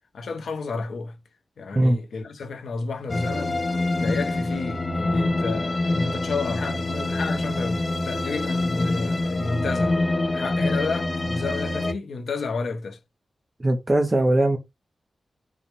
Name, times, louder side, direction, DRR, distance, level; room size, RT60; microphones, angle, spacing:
voice 1, 0.1-1.2 1.6-3.6 4.0-10.0 10.3-13.0, left 4 dB, 90° left, 0.7 m, -31 dB
sound 1, 3.1-11.9, left 2 dB, 25° left, 0.4 m, -25 dB
voice 2, 13.6-14.6, right 1 dB, 20° right, 0.6 m, -20 dB
4.8 x 2.1 x 3.2 m
wide cardioid pair, 155°, 0 cm